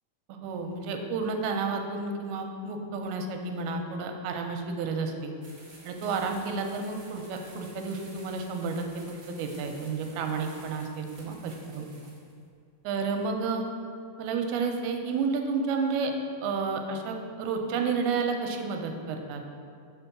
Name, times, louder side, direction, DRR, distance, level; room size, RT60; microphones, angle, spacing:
voice 1, 0.3-5.3 5.9-12.1 12.8-13.6 14.2-16.1 16.4-19.4, right 4 dB, 85° right, 4 dB, 2.6 m, -31 dB
sound 1, 5.4-12.3, right 2 dB, 45° right, 1.9 m, -52 dB
7.2 x 4.5 x 5.9 m, 2.3 s
omnidirectional pair, 4.3 m